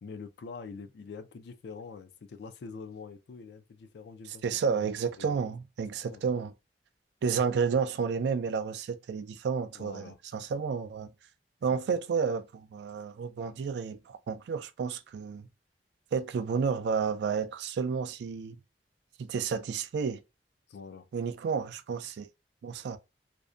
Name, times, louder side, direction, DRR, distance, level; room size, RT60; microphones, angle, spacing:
voice 1, 0.0-4.9 5.2-5.5 6.1-6.2 9.7-10.2 11.9-12.1 20.7-21.1, left 5 dB, 65° left, 0.4 m, -45 dB
voice 2, 4.4-6.5 7.2-11.1 11.6-15.5 16.1-18.6 19.2-20.2 21.1-22.3 22.6-23.0, right 6 dB, 70° right, 0.3 m, -31 dB
2.6 x 2.1 x 2.3 m
head